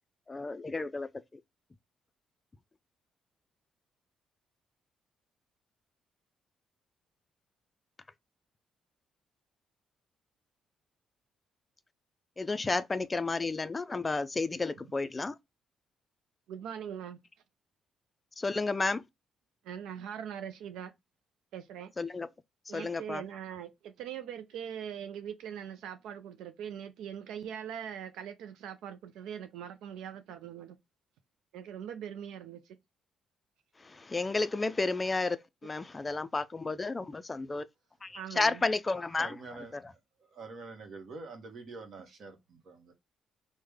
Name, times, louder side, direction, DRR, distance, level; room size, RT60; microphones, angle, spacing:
voice 1, 0.3-1.1 12.4-15.4 18.4-19.0 22.0-22.3 22.7-23.2 33.8-35.4 35.6-37.6 38.0-39.4 39.7-39.9, left 3 dB, 25° left, 0.3 m, -32 dB
voice 2, 16.5-17.2 19.6-20.9 21.5-21.9 22.7-30.8 31.5-32.8 38.1-38.6, right 9 dB, 90° right, 0.3 m, -41 dB
voice 3, 39.2-40.0 40.3-42.9, right 3 dB, 60° right, 1.0 m, -46 dB
3.2 x 2.1 x 3.3 m
cardioid pair, 90°, 0 cm